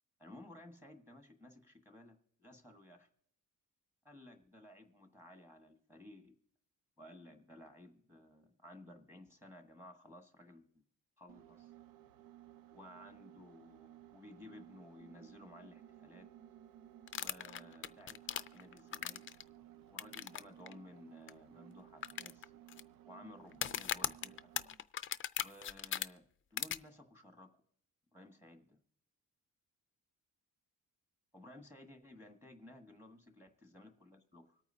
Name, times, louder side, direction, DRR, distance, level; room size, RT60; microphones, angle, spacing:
voice 1, 0.2-3.1 4.0-6.3 7.0-10.8 11.2-11.7 12.7-16.3 17.1-19.2 19.8-22.5 23.0-24.5 25.4-26.2 26.5-27.5 28.1-28.8 31.3-34.6, left 1 dB, 5° right, 4 dB, 1.4 m, -56 dB
sound 1, 11.3-24.8, right 12 dB, 85° right, 0.7 m, -58 dB
sound 2, 17.1-19.4 20.0-20.4 20.7-20.8 21.3-21.4 22.0-22.8 23.5-26.1 26.6-26.8, left 10 dB, 40° left, 0.4 m, -38 dB
25.5 x 9.0 x 2.7 m, 0.68 s
wide cardioid pair, 170°, 33 cm